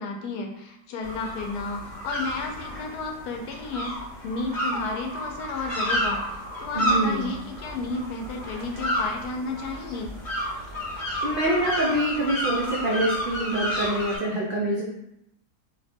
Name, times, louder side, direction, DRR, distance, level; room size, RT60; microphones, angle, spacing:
voice 1, 0.0-3.9 4.2-10.1, left 3 dB, 75° left, 2 dB, 1.1 m, -32 dB
sound 1, 1.0-14.2, equal, 35° left, 0.9 m, -31 dB
voice 2, 6.7-7.3 11.2-14.8, right 1 dB, 70° right, -5 dB, 0.5 m, -25 dB
2.8 x 2.2 x 4.1 m, 0.83 s
omnidirectional pair, 1.7 m